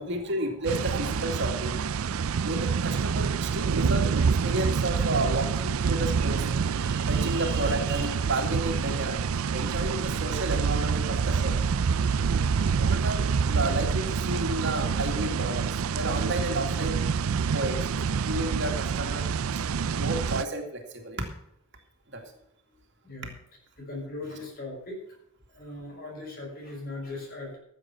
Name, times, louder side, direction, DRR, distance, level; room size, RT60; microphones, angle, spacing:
voice 1, 0.0-1.9 2.4-9.2 9.5-11.6 12.8-17.0 17.5-19.3 20.0-21.3 22.1-22.2, right 1 dB, 55° right, 3 dB, 2.3 m, -32 dB
sound 1, 0.7-20.4, right 6 dB, 75° right, 0.5 m, -27 dB
voice 2, 23.9-25.0 25.6-27.6, left 2 dB, 45° left, -1 dB, 6.3 m, -39 dB
14.0 x 7.7 x 5.9 m, 0.73 s
head